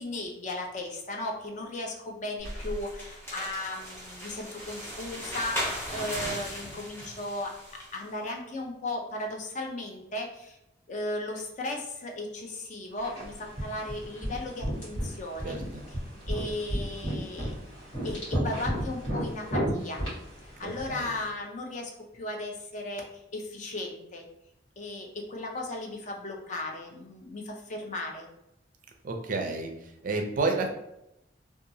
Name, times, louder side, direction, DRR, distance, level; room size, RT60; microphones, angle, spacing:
voice 1, 0.0-7.5 7.9-10.6 10.9-15.6 16.3-17.5 18.0-20.0 20.6-23.0 23.3-24.3 24.8-28.3, left 2 dB, 40° left, 1 dB, 0.5 m, -36 dB
sound 1, 2.4-8.0, equal, 15° left, 0.8 m, -37 dB
sound 2, 13.0-21.2, equal, 70° left, 1.4 m, -34 dB
voice 2, 15.4-15.8 20.6-21.1 29.0-29.7 30.0-30.7, right 3 dB, 45° right, 4 dB, 0.4 m, -30 dB
2.8 x 2.3 x 2.6 m, 0.84 s
head